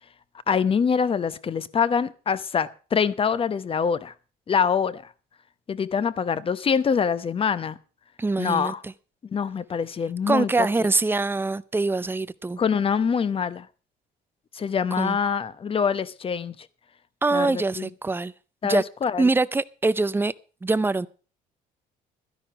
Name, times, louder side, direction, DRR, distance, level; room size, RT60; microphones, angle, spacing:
voice 1, 0.5-4.1 4.5-5.1 5.7-7.8 8.4-8.8 9.3-10.9 12.6-13.7 14.5-16.5 17.3-17.9 18.6-19.3, left 6 dB, 35° left, 0.9 m, -25 dB
voice 2, 8.2-8.9 10.3-12.6 15.0-15.2 17.2-18.3 18.6-18.8 19.2-20.3 20.6-21.1, right 3 dB, 15° right, 0.6 m, -24 dB
12.5 x 11.0 x 5.9 m
cardioid pair, 110°, 17 cm